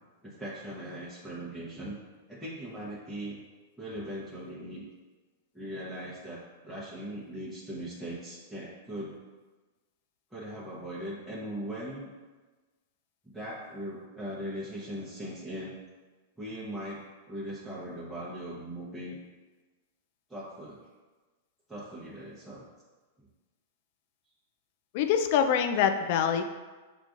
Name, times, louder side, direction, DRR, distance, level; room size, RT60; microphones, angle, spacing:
voice 1, 0.2-2.0 2.3-3.4 3.8-4.9 5.5-9.2 10.3-12.1 13.2-15.8 16.4-19.2 20.3-20.8 21.7-22.7, equal, 5° right, -9 dB, 0.8 m, -39 dB
voice 2, 24.9-26.4, left 8 dB, 55° left, 7 dB, 0.4 m, -25 dB
6.6 x 2.4 x 2.5 m, 1.3 s
hypercardioid pair, 120°, 0 cm